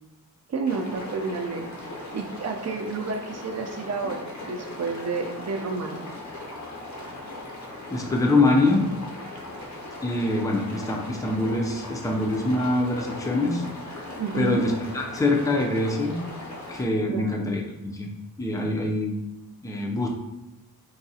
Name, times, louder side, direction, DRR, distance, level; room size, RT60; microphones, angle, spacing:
voice 1, 0.5-1.8 2.1-6.1 14.2-14.6 17.1-17.4, right 4 dB, 45° right, 4 dB, 0.6 m, -30 dB
sound 1, 0.6-16.8, left 2 dB, 50° left, 0.9 m, -38 dB
voice 2, 7.9-8.8 10.0-13.6 14.3-16.2 16.7-18.1 18.4-19.2 19.6-20.1, left 2 dB, 10° left, 1 dB, 0.6 m, -24 dB
4.8 x 2.2 x 2.8 m, 0.99 s
cardioid pair, 80°, 38 cm